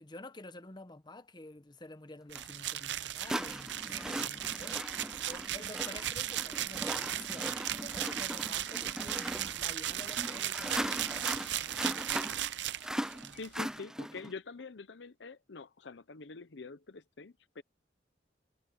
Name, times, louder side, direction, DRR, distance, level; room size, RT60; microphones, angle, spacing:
voice 1, 0.0-12.2, left 2 dB, 25° left, 1.0 m, -50 dB
sound 1, 2.3-13.5, right 12 dB, 75° right, 0.6 m, -37 dB
sound 2, 2.4-2.5 3.3-14.3, right 1 dB, 5° right, 0.4 m, -39 dB
sound 3, 3.2-10.7 11.0-11.1 11.4-11.5 11.7-14.9, left 8 dB, 45° left, 7.4 m, -64 dB
voice 2, 4.1-4.4 13.4-17.6, left 4 dB, 75° left, 0.8 m, -46 dB
head